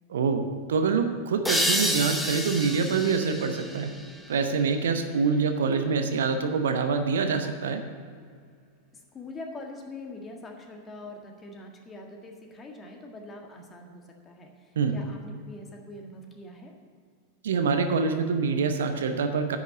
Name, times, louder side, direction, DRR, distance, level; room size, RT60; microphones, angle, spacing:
voice 1, 0.1-3.9 4.3-7.8 14.8-14.9 17.4-19.6, right 5 dB, 60° right, 7 dB, 0.8 m, -25 dB
sound 1, 1.4-4.8, left 1 dB, 5° left, 1.1 m, -30 dB
voice 2, 8.9-16.8, left 2 dB, 20° left, 2 dB, 1.7 m, -43 dB
10.0 x 6.4 x 8.4 m, 2.1 s
figure-of-eight pair, 90°, 0 cm